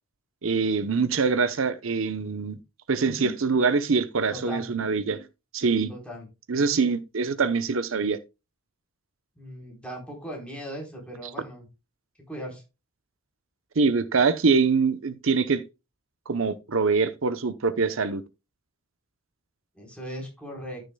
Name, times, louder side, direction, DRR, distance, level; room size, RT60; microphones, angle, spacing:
voice 1, 0.4-2.6 2.9-5.3 5.5-5.9 6.5-8.2 13.8-15.6 16.3-18.2, right 4 dB, 70° right, 0.8 m, -24 dB
voice 2, 4.3-4.7 5.9-6.3 6.5-6.8 9.4-11.6 12.3-12.6 19.7-20.8, equal, 5° left, 4.1 m, -38 dB
14.0 x 6.6 x 2.3 m
head